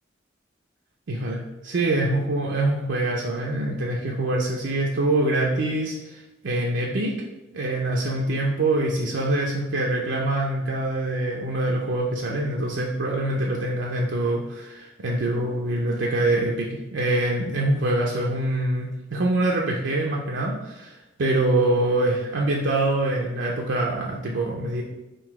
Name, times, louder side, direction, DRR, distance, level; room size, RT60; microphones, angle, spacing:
voice 1, 1.1-7.2 7.5-24.8, right 2 dB, 75° right, -2 dB, 0.5 m, -25 dB
3.8 x 2.6 x 4.6 m, 1.0 s
head